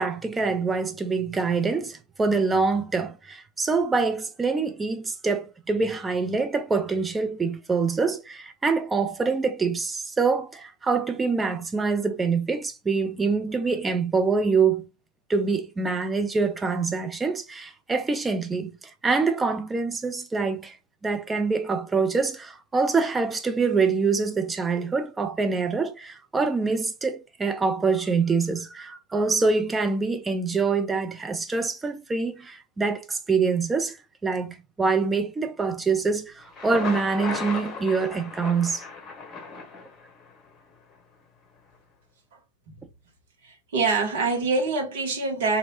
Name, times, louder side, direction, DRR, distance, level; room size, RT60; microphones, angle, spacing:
voice 1, 0.0-14.9 15.3-18.7 19.0-20.8 21.0-34.0 34.2-38.8, right 4 dB, 15° right, 0.4 m, -25 dB
Thunder, 36.4-40.4, left 4 dB, 25° left, 1.0 m, -35 dB
voice 2, 43.4-45.6, right 3 dB, 55° right, 1.1 m, -25 dB
2.8 x 2.6 x 2.9 m
figure-of-eight pair, 90°, 0 cm